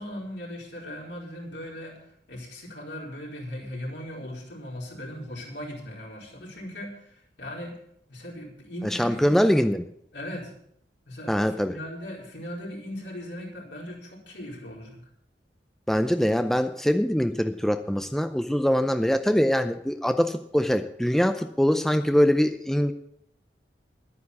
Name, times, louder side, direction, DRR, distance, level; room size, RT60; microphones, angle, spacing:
voice 1, 0.0-7.8 8.1-9.4 10.1-10.5 11.1-15.0, equal, 75° left, -3 dB, 4.5 m, -38 dB
voice 2, 8.8-9.8 11.3-11.8 15.9-22.9, equal, ahead, 8 dB, 0.5 m, -23 dB
12.0 x 9.6 x 7.1 m, 0.70 s
head